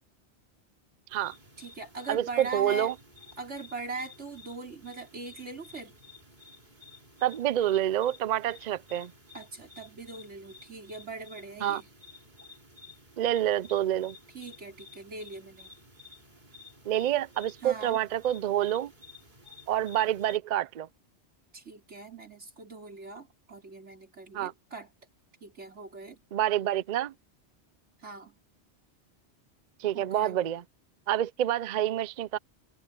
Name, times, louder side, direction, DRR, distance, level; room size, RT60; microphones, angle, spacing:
sound 1, 1.1-20.4, left 3 dB, 40° right, 3.9 m, -53 dB
voice 1, 1.6-2.9 3.4-5.9 9.3-11.9 14.3-15.7 17.6-18.0 21.5-24.9 25.4-26.2 28.0-28.4 29.9-30.4, right 3 dB, 80° right, 4.0 m, -41 dB
voice 2, 2.5-2.9 7.2-9.1 11.6-11.8 13.2-14.2 16.9-18.9 19.7-20.9 24.3-24.5 26.3-27.1 29.8-30.6 31.1-32.4, right 12 dB, 60° right, 0.5 m, -27 dB
omnidirectional pair, 1.2 m